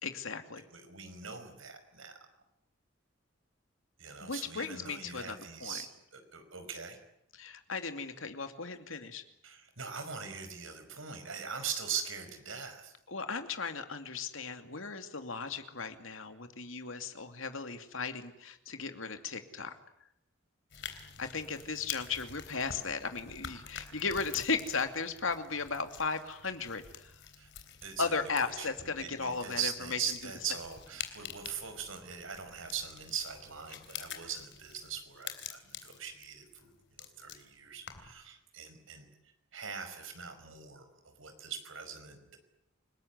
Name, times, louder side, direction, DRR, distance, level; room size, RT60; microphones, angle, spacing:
voice 1, 0.0-0.6 4.2-5.8 7.3-9.2 13.1-19.8 21.2-27.1 28.0-30.0, left 4 dB, 80° left, 7 dB, 2.6 m, -36 dB
voice 2, 0.7-2.1 4.0-7.0 9.4-12.9 27.4-27.5 27.8-28.1 28.4-28.7 29.0-36.7 37.0-39.1 39.5-42.4, right 7 dB, 75° right, 8 dB, 5.4 m, -41 dB
sound 1, 20.7-38.2, left 8 dB, 60° left, 3.6 m, -48 dB
29.0 x 20.0 x 9.6 m, 0.77 s
head